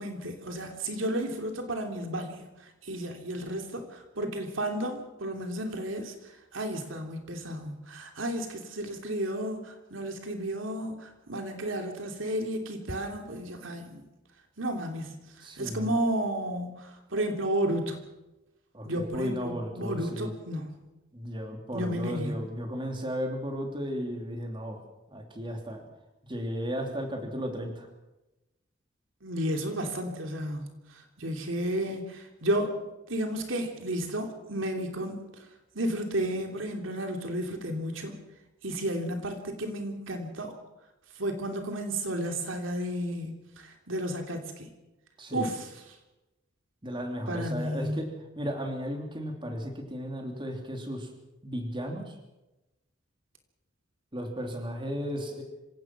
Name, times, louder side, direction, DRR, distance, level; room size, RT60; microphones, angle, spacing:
voice 1, 0.0-2.4 2.8-3.9 4.2-6.1 6.5-14.0 14.6-15.2 15.6-18.0 18.8-20.8 21.7-22.4 29.2-30.6 31.2-32.8 33.1-35.2 35.7-38.2 38.6-40.5 41.2-44.7 45.3-45.7 47.3-48.1, right 1 dB, 75° right, 4 dB, 3.1 m, -32 dB
voice 2, 15.4-15.9 18.7-20.3 21.1-24.8 25.1-25.8 26.2-27.9 45.2-45.5 46.8-48.1 48.4-51.1 51.4-52.1 54.1-55.4, equal, 25° right, 3 dB, 3.2 m, -34 dB
26.0 x 17.0 x 6.1 m, 1.0 s
head